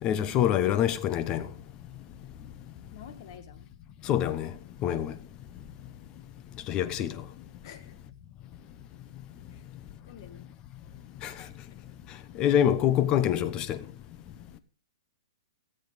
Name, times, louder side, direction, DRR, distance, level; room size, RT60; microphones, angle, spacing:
voice 1, 0.0-1.5 4.0-4.5 4.8-5.1 6.7-7.1 11.2-11.3 12.4-13.8, left 10 dB, 25° left, 0.9 m, -25 dB
voice 2, 2.9-3.7 7.6-8.0 9.5-9.6 10.1-10.4, left 8 dB, 50° left, 1.7 m, -48 dB
14.5 x 7.9 x 4.9 m
hypercardioid pair, 145°, 3 cm